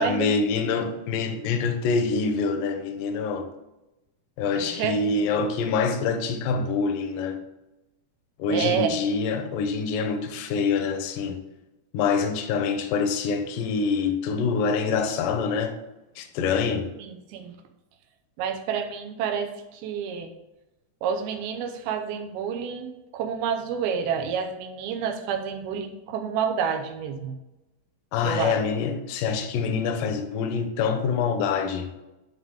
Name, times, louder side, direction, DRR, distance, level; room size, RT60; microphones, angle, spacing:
voice 1, 0.0-3.5 4.4-7.4 8.4-11.4 11.9-15.8 16.2-16.9 28.1-31.9, left 5 dB, 75° left, 2.2 m, -25 dB
voice 2, 4.6-5.0 8.5-8.9 17.0-17.5 18.4-20.3 21.0-22.9 23.1-27.4 28.2-28.5, right 7 dB, 80° right, 2.7 m, -29 dB
11.0 x 3.7 x 3.6 m
omnidirectional pair, 4.4 m